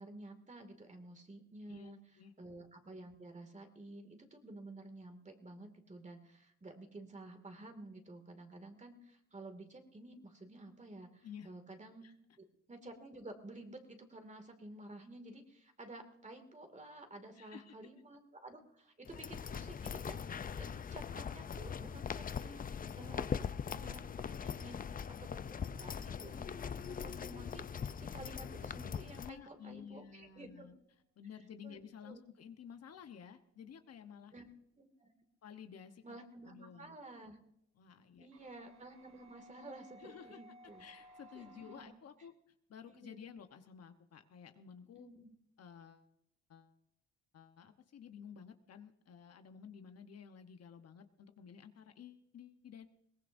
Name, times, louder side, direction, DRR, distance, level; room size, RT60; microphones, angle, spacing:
voice 1, 0.0-12.1 12.4-30.7 31.6-32.2 34.3-34.5 34.8-35.1 36.0-37.4 38.2-40.9 41.4-41.9 42.9-43.3 45.0-45.3, right 2 dB, 25° right, 5 dB, 2.3 m, -52 dB
voice 2, 1.7-2.3 11.2-11.5 12.0-12.1 17.4-17.8 29.2-30.7 31.2-34.3 35.4-36.2 36.4-37.0 37.7-38.3 40.0-40.4 40.8-42.3 42.7-45.1 45.6-46.1 46.5-46.7 47.3-52.9, left 7 dB, 55° left, 7 dB, 1.1 m, -53 dB
sound 1, 19.1-29.3, left 7 dB, 30° left, 0.5 m, -41 dB
sound 2, 38.3-41.8, equal, 55° right, 4.6 m, -60 dB
22.0 x 18.0 x 2.6 m, 0.75 s
cardioid pair, 90°, 30 cm